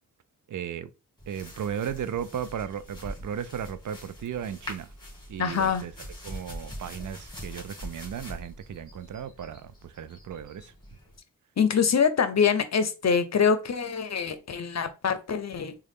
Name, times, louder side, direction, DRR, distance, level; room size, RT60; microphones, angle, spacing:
voice 1, 0.5-0.9 1.3-4.9 5.3-5.9 6.2-10.7, right 8 dB, 60° right, 0.4 m, -35 dB
sound 1, 1.2-11.2, equal, 10° left, 1.9 m, -43 dB
voice 2, 5.4-5.9 11.6-15.8, left 6 dB, 50° left, 0.7 m, -24 dB
3.7 x 2.3 x 3.5 m
cardioid pair, 40°, 35 cm